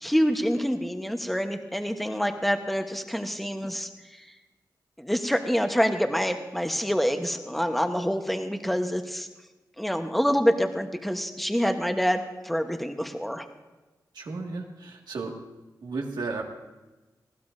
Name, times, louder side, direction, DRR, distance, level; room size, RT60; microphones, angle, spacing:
voice 1, 0.0-4.2 5.0-9.3 9.8-13.4, equal, ahead, 5 dB, 1.1 m, -26 dB
voice 2, 14.1-15.3 15.8-16.4, right 3 dB, 85° right, 1 dB, 2.0 m, -33 dB
20.0 x 15.5 x 2.7 m, 1.1 s
wide cardioid pair, 90°, 7 cm